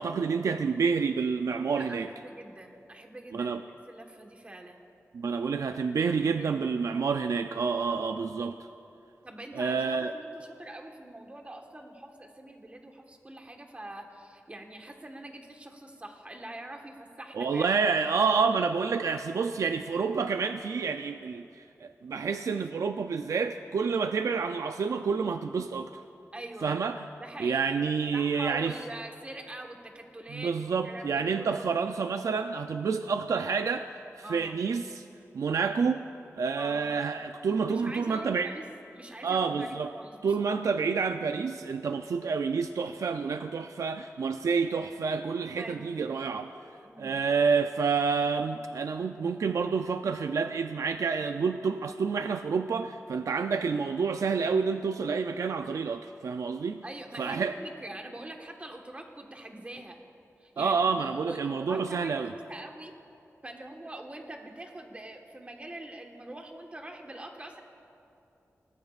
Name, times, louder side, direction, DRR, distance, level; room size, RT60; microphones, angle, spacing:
voice 1, 0.0-2.1 3.3-3.6 5.1-8.6 9.5-10.1 17.3-25.9 26.6-27.1 27.4-28.8 30.3-35.0 35.3-36.0 36.4-38.5 39.2-39.9 40.2-46.5 47.0-56.8 57.2-57.5 60.6-62.3, right 5 dB, 85° right, 8 dB, 0.4 m, -28 dB
voice 2, 1.7-3.5 3.9-4.8 6.1-6.6 7.8-8.0 9.2-17.7 26.3-26.8 27.2-27.7 28.1-31.7 34.2-34.7 36.6-36.9 37.7-38.6 38.9-40.6 45.6-46.0 46.8-47.2 56.8-60.0 60.4-62.9 63.4-67.6, right 1 dB, 25° right, 2 dB, 1.4 m, -44 dB
25.5 x 19.0 x 2.4 m, 2.7 s
wide cardioid pair, 120°, 5 cm